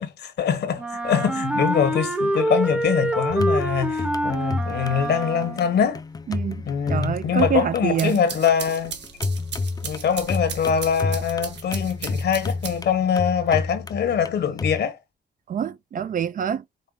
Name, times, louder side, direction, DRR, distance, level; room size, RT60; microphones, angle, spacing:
voice 1, 0.0-6.0 6.7-9.0 9.8-15.0, left 7 dB, 70° left, 1.2 m, -23 dB
Wind instrument woodwind instrument, 0.8-5.8, right 1 dB, 5° right, 0.8 m, -26 dB
sound 1, 3.3-14.8, left 3 dB, 20° left, 0.4 m, -31 dB
voice 2, 6.3-8.2 15.5-16.6, right 8 dB, 50° right, 0.5 m, -26 dB
sound 2, 7.7-13.1, right 7 dB, 85° right, 1.4 m, -37 dB
5.4 x 4.3 x 2.2 m
wide cardioid pair, 145°, 18 cm